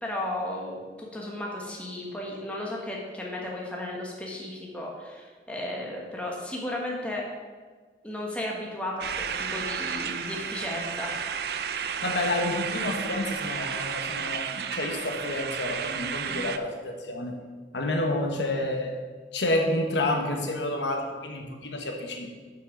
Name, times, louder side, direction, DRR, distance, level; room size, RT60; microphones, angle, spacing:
voice 1, 0.0-7.2 8.0-11.2 11.7-11.8 16.3-16.5, left 1 dB, 5° left, -3 dB, 1.2 m, -34 dB
sound 1, 9.0-16.6, right 7 dB, 60° right, 0.4 m, -32 dB
voice 2, 12.0-17.3 17.7-18.9 19.3-22.3, left 1 dB, 80° left, 3 dB, 1.1 m, -29 dB
6.2 x 5.7 x 6.0 m, 1.5 s
head